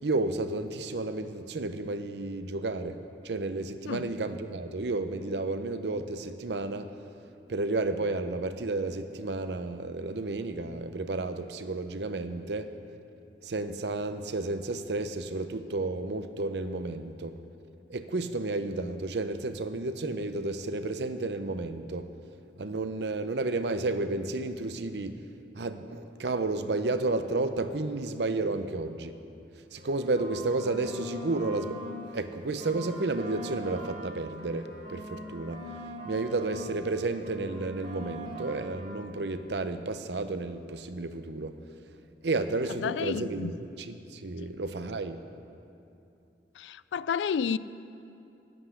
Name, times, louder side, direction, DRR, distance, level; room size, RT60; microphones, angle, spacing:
voice 1, 0.0-3.0 3.2-6.9 7.5-12.7 13.4-17.4 17.9-22.0 22.6-25.2 25.6-29.1 29.7-31.8 32.1-35.6 36.1-41.6 42.2-45.2, right 2 dB, 70° right, 10 dB, 0.7 m, -32 dB
sound 1, 29.7-32.0 32.3-36.7 37.0-39.0, right 1 dB, 45° right, 2.3 m, -42 dB
voice 2, 42.7-43.5 44.4-44.5 46.6-47.6, left 6 dB, 85° left, 17 dB, 0.3 m, -31 dB
11.0 x 7.9 x 10.0 m, 2.7 s
head